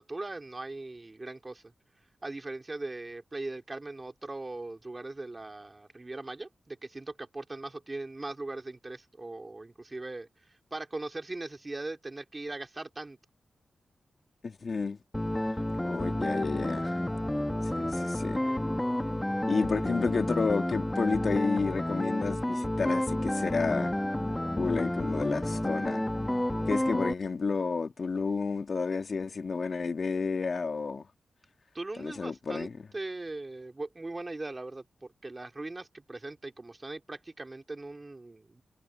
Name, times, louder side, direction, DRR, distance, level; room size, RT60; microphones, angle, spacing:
voice 1, 0.0-1.6 2.2-13.2 31.7-38.6, right 2 dB, 25° right, 2.7 m, -40 dB
voice 2, 14.4-15.0 15.8-17.0 17.8-18.5 19.5-24.0 24.6-26.0 26.7-31.0 32.0-32.7, left 4 dB, 45° left, 1.7 m, -31 dB
sound 1, 15.1-27.1, left 1 dB, 10° left, 1.7 m, -30 dB
wide cardioid pair, 135°, 0 cm